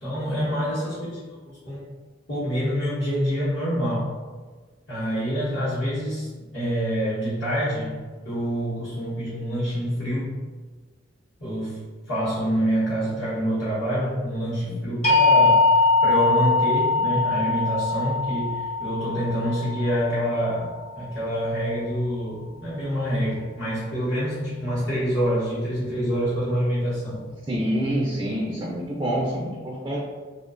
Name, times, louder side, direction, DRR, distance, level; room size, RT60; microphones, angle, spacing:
voice 1, 0.0-1.2 1.5-1.9 2.3-4.1 4.9-8.0 8.2-10.4 11.4-27.2, equal, 65° left, -13 dB, 0.9 m, -26 dB
sound 1, 15.0-21.0, left 3 dB, 35° left, 0.8 m, -21 dB
voice 2, 27.5-30.0, equal, 20° right, -4 dB, 0.3 m, -27 dB
2.4 x 2.2 x 2.4 m, 1.4 s
head